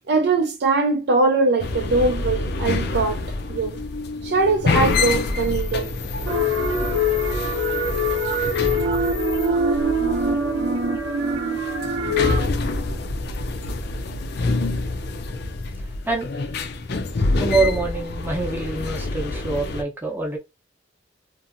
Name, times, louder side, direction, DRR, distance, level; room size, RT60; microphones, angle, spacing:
voice 1, 0.1-3.2 3.5-3.8 4.2-5.9, right 3 dB, 60° right, 0.5 m, -21 dB
sound 1, 1.6-19.8, left 3 dB, 60° left, 0.5 m, -27 dB
sound 2, 6.3-12.5, equal, 90° right, 0.7 m, -23 dB
voice 2, 17.4-20.4, right 3 dB, 10° right, 0.7 m, -25 dB
2.7 x 2.5 x 2.6 m
head